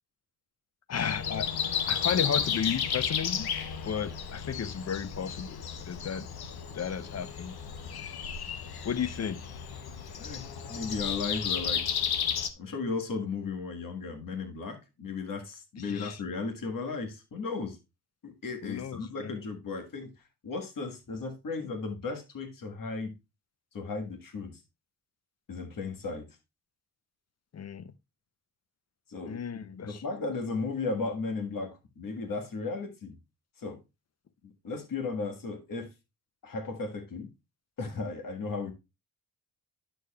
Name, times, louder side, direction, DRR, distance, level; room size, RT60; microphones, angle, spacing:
Breathing, 0.9-12.5, left 8 dB, 80° left, 0.9 m, -33 dB
voice 1, 0.9-1.5 1.9-3.5 3.8-6.3 6.7-7.5 8.8-9.4 15.9-16.2 18.6-19.3 27.5-27.9 29.3-30.0, left 7 dB, 45° left, 0.6 m, -33 dB
voice 2, 10.2-11.8 12.6-17.8 18.2-23.1 23.7-24.6 25.5-26.3 29.1-33.1 33.6-33.8 34.4-35.9 36.4-37.3 37.8-38.7, left 4 dB, 60° left, 1.6 m, -35 dB
9.7 x 6.6 x 2.3 m
wide cardioid pair, 100°, 37 cm